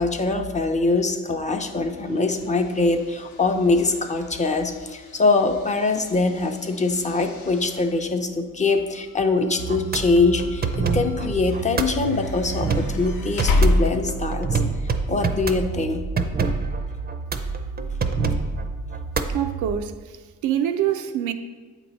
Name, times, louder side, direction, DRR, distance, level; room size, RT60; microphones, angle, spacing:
voice 1, 0.0-14.6 15.1-16.0, left 3 dB, 25° left, 5 dB, 0.6 m, -23 dB
sound 1, 1.6-14.4, left 2 dB, 75° left, 1.0 m, -31 dB
sound 2, 9.6-19.8, right 4 dB, 30° right, 0.5 m, -27 dB
voice 2, 19.3-19.9 20.4-21.3, right 10 dB, 85° right, 8 dB, 0.5 m, -24 dB
7.7 x 3.0 x 5.3 m, 1.4 s
cardioid pair, 90°, 30 cm